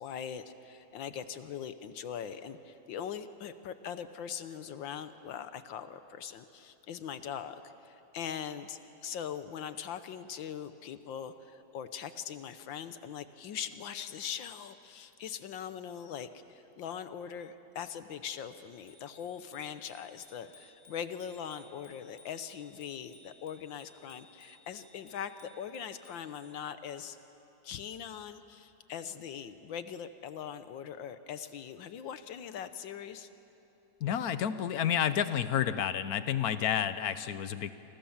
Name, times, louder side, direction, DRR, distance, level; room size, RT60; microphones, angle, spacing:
voice 1, 0.0-27.2 27.6-33.3, left 8 dB, 75° left, 11 dB, 1.6 m, -41 dB
Bicycle bell, 18.5-26.6, left 3 dB, 30° left, 3.4 m, -60 dB
voice 2, 34.0-37.7, left 9 dB, 60° left, 12 dB, 1.1 m, -30 dB
28.0 x 26.0 x 7.2 m, 3.0 s
omnidirectional pair, 2.1 m